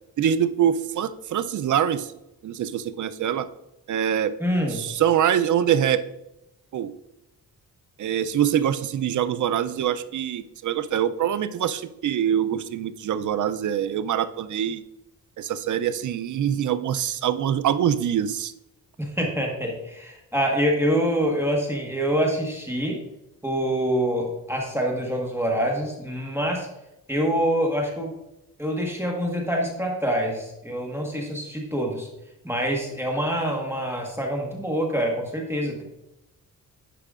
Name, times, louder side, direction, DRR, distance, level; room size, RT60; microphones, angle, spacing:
voice 1, 0.2-2.1 2.4-3.5 3.9-4.3 4.7-6.0 6.7-6.9 8.0-14.8 15.4-18.5, right 9 dB, 55° right, 13 dB, 0.5 m, -24 dB
voice 2, 4.4-4.8 19.0-23.0 23.4-26.7 27.1-28.1 28.6-32.1 32.4-35.8, equal, 5° right, 0 dB, 1.3 m, -25 dB
10.0 x 4.8 x 2.4 m, 0.90 s
cardioid pair, 100°, 36 cm